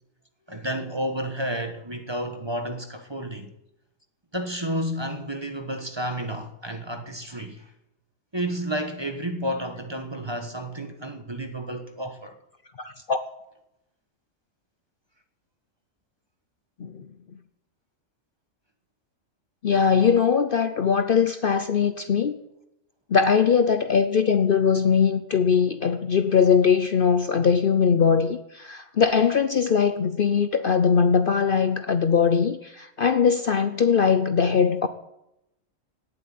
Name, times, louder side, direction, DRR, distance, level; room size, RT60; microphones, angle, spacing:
voice 1, 0.5-3.5 4.3-7.7 8.3-12.4, right 1 dB, 20° right, 1.2 m, -31 dB
voice 2, 12.8-13.2 16.8-17.1 19.6-22.3 23.1-34.9, left 6 dB, 50° left, 0.8 m, -21 dB
17.5 x 7.8 x 9.5 m
omnidirectional pair, 1.3 m